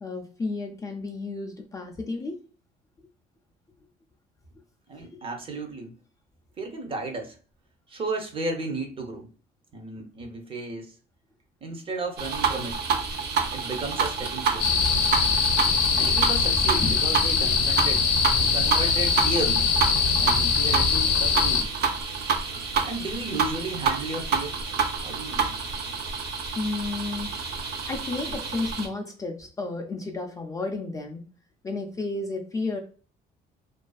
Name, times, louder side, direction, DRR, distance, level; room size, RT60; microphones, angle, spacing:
voice 1, 0.0-2.4 16.8-17.0 26.6-27.4 27.9-31.2 31.6-32.8, left 3 dB, 20° left, 2 dB, 0.3 m, -32 dB
voice 2, 4.9-5.9 6.6-7.4 7.9-9.3 9.7-10.9 11.6-12.8 13.5-14.7 15.1-15.5 15.9-18.1 18.4-19.6 20.2-21.7 22.8-24.6 25.0-25.7, right 2 dB, 35° right, 3 dB, 0.6 m, -34 dB
sound 1, 12.2-28.9, right 5 dB, 75° right, 0.6 m, -28 dB
sound 2, 14.6-21.6, left 6 dB, 80° left, 0.6 m, -22 dB
2.4 x 2.3 x 2.3 m, 0.38 s
cardioid pair, 110°, 17 cm